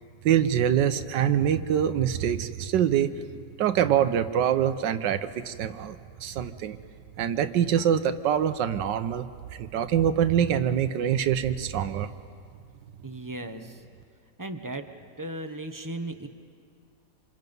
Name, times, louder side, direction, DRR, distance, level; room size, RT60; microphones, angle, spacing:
voice 1, 0.2-3.3 3.6-6.8 7.2-9.3 9.5-12.1, right 9 dB, 85° right, 10 dB, 1.4 m, -25 dB
voice 2, 13.0-13.8 14.4-14.8 15.2-16.3, right 2 dB, 15° right, 6 dB, 0.8 m, -36 dB
27.5 x 27.0 x 5.4 m, 2.4 s
omnidirectional pair, 1.9 m